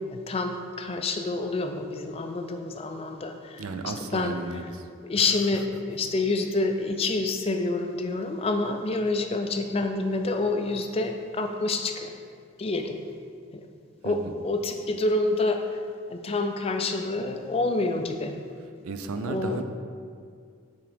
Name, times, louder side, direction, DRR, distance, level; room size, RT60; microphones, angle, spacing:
voice 1, 0.1-3.6 4.1-4.4 5.0-12.1 12.6-13.0 13.5-13.6 14.0-15.6 16.1-18.3 19.2-19.6, left 2 dB, 30° left, 5 dB, 0.3 m, -27 dB
voice 2, 3.6-4.8 5.2-5.3 14.0-14.3 18.8-19.6, right 3 dB, 90° right, 8 dB, 0.4 m, -34 dB
5.9 x 3.6 x 5.0 m, 2.2 s
head